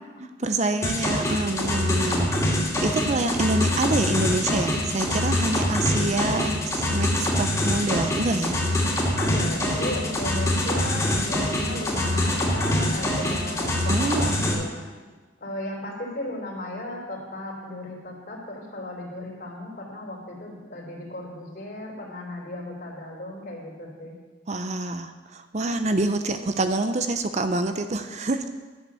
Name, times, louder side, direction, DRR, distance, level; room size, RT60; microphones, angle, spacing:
voice 1, 0.4-8.6 13.9-14.5 24.5-28.5, right 2 dB, 35° right, 8 dB, 0.6 m, -26 dB
sound 1, 0.8-14.5, left 1 dB, 15° left, 2.6 m, -25 dB
voice 2, 9.2-14.8 15.4-24.1, left 1 dB, 50° left, -2 dB, 3.4 m, -35 dB
11.5 x 8.1 x 6.8 m, 1.3 s
head